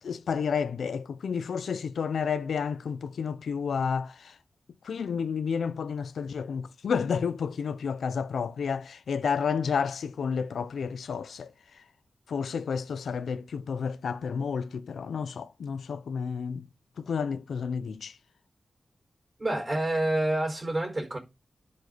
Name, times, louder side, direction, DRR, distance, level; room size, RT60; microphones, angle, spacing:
voice 1, 0.0-4.3 4.8-11.5 12.3-16.7 17.0-18.1, left 6 dB, 90° left, 0.6 m, -31 dB
voice 2, 19.4-21.2, right 1 dB, 35° right, 4.4 m, -28 dB
11.0 x 5.3 x 4.1 m
cardioid pair, 50°, 0 cm